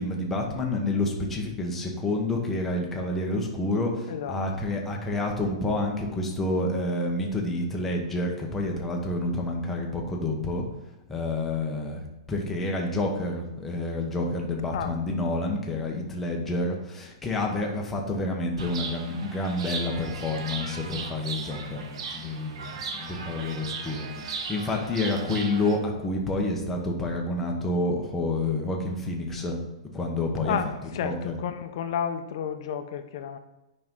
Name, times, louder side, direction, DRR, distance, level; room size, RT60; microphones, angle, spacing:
voice 1, 0.0-10.7 11.1-29.6 29.9-31.4, left 2 dB, 5° left, -1 dB, 0.9 m, -29 dB
voice 2, 4.1-4.4 14.7-14.9 30.4-33.4, left 8 dB, 45° left, 8 dB, 0.7 m, -31 dB
Chirp tweet, 18.6-25.8, right 4 dB, 60° right, 0.9 m, -37 dB
8.6 x 5.3 x 3.7 m, 1.0 s
supercardioid pair, 175°, 3 cm